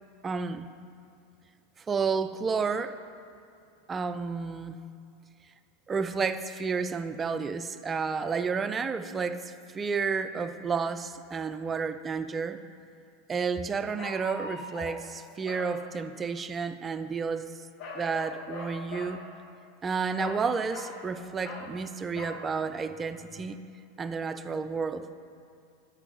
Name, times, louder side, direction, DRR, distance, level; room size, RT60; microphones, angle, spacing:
voice 1, 0.2-0.7 1.8-2.9 3.9-4.8 5.9-12.6 13.3-17.5 17.9-19.2 19.8-23.6 24.0-25.1, right 5 dB, 25° right, 11 dB, 0.3 m, -31 dB
sound 1, 12.3-12.4 14.0-15.0 15.4-15.7 17.8-19.2 20.2-21.0 21.4-21.7 22.1-22.4, left 3 dB, 50° left, 1.1 m, -41 dB
9.7 x 5.3 x 2.8 m, 2.5 s
hypercardioid pair, 100°, 0 cm